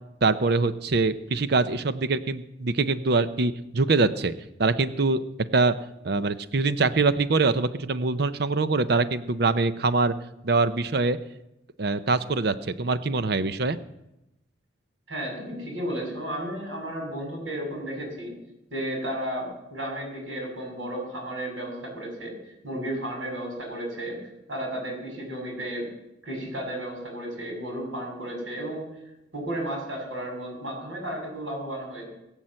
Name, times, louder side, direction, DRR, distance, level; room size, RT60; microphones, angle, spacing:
voice 1, 0.2-4.3 4.6-5.2 5.5-5.7 6.0-10.1 10.4-11.2 11.8-13.8, right 3 dB, 55° right, 13 dB, 0.7 m, -24 dB
voice 2, 15.1-18.3 18.7-22.3 22.6-24.2 24.5-25.9 26.2-28.9 29.3-32.1, right 1 dB, 85° right, 0 dB, 6.8 m, -33 dB
21.0 x 7.3 x 7.7 m, 0.89 s
head